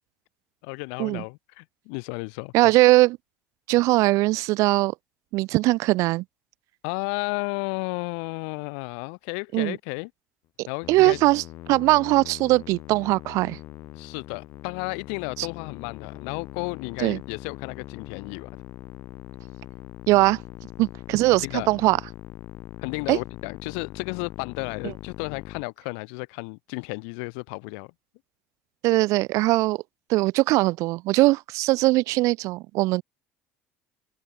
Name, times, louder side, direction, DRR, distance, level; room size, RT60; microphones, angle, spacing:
voice 1, 0.6-2.5 6.8-10.1 10.7-11.2 13.9-18.5 21.4-21.7 22.8-27.9, left 40 dB or more, 85° left, 3.1 m, -33 dB
voice 2, 2.5-3.2 3.7-4.9 5.3-6.2 9.5-9.8 10.6-13.6 15.4-15.5 17.0-17.2 20.1-20.4 20.8-22.0 23.1-23.2 24.8-24.9 28.8-29.8 30.1-33.0, right 20 dB, 70° right, 0.7 m, -21 dB
Musical instrument, 10.8-25.6, left 16 dB, 65° left, 0.9 m, -41 dB
supercardioid pair, 85°, 6 cm